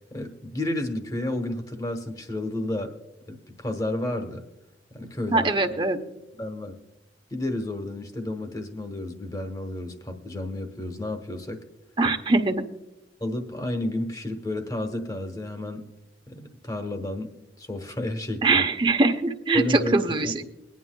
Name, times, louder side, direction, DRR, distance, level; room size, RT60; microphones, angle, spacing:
voice 1, 0.1-2.9 3.3-4.4 4.9-5.5 6.4-6.7 7.3-11.6 13.2-15.8 16.3-17.3 17.6-18.6 19.5-19.9 20.2-20.4, left 1 dB, 20° left, 6 dB, 1.1 m, -31 dB
voice 2, 5.3-6.0 12.0-12.6 18.4-20.4, right 3 dB, 30° right, 6 dB, 0.8 m, -22 dB
23.0 x 9.5 x 2.2 m, 0.95 s
head